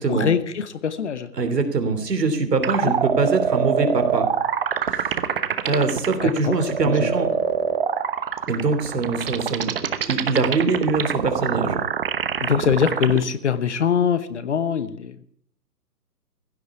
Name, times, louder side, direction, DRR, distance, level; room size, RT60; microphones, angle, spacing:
voice 1, 0.0-1.3 2.8-2.9 6.2-6.5 6.8-7.1 12.4-15.2, left 7 dB, 45° left, 14 dB, 1.0 m, -23 dB
voice 2, 1.4-4.3 4.9-5.0 5.6-7.3 8.5-9.7 10.0-11.8, right 3 dB, 70° right, 8 dB, 3.1 m, -23 dB
sound 1, 2.6-13.2, right 8 dB, 35° right, 1.0 m, -24 dB
16.0 x 8.0 x 8.3 m, 0.64 s
hypercardioid pair, 155°, 50 cm